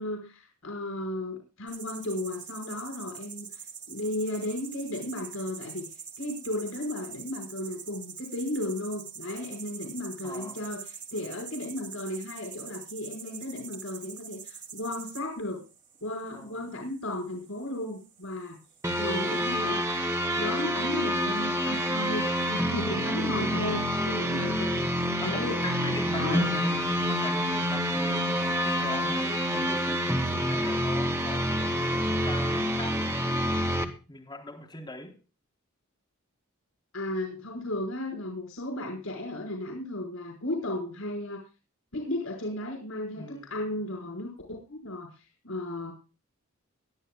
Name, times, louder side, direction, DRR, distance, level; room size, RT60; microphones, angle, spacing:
voice 1, 0.0-5.8 6.2-15.7 16.0-18.6 19.0-19.9 20.3-25.6 26.1-26.5 36.9-41.4 41.9-44.3 44.7-45.9, left 1 dB, 90° left, 5.5 m, -35 dB
sound 1, 1.7-19.5, right 7 dB, 35° right, 2.9 m, -45 dB
voice 2, 10.2-10.6 16.3-16.6 23.5-23.8 25.2-35.1 43.2-43.5, left 2 dB, 20° left, 3.9 m, -41 dB
sound 2, 18.8-33.8, equal, 15° right, 1.9 m, -27 dB
23.0 x 12.5 x 2.4 m
head